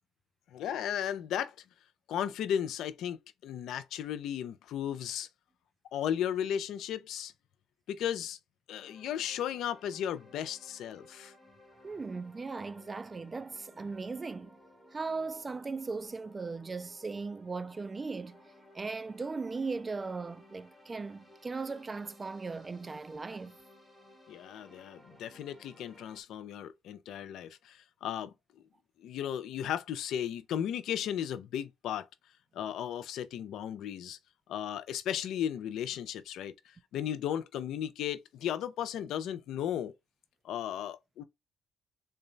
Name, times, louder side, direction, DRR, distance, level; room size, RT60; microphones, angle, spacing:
voice 1, 0.5-1.5 2.1-5.3 5.9-7.3 7.9-8.4 8.7-11.3 24.3-28.6 29.0-32.1 32.5-34.2 34.5-39.9 40.4-41.2, left 10 dB, 80° left, 0.4 m, -35 dB
sound 1, 8.8-26.2, left 1 dB, 5° left, 1.3 m, -58 dB
voice 2, 11.8-14.5 14.9-18.4 18.7-23.6, right 4 dB, 30° right, 0.3 m, -38 dB
3.8 x 2.2 x 3.8 m
cardioid pair, 90°, 0 cm